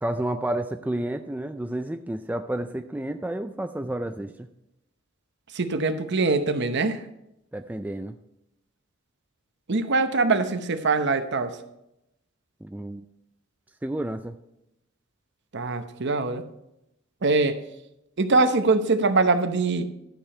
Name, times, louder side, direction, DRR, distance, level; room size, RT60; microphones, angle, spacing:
voice 1, 0.0-4.5 7.5-8.2 12.6-13.1 13.8-14.4, right 1 dB, 10° right, 8 dB, 0.3 m, -30 dB
voice 2, 5.5-7.0 9.7-11.6 15.5-16.4 17.2-17.6 18.2-19.8, right 3 dB, 55° right, 9 dB, 0.8 m, -23 dB
12.0 x 6.9 x 4.2 m, 0.85 s
head